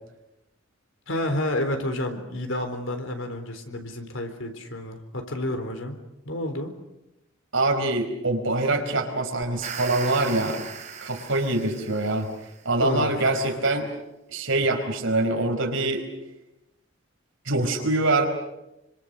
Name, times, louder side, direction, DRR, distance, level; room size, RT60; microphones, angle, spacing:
voice 1, 1.1-5.9 6.2-6.7 12.8-13.4, left 1 dB, 80° left, 6 dB, 4.0 m, -30 dB
voice 2, 7.5-10.7 11.0-12.3 12.6-13.9 14.3-16.0 17.5-18.3, right 2 dB, 80° right, 4 dB, 4.7 m, -24 dB
sound 1, 9.4-12.6, right 6 dB, 40° right, 4.6 m, -38 dB
27.0 x 25.5 x 6.7 m, 0.93 s
head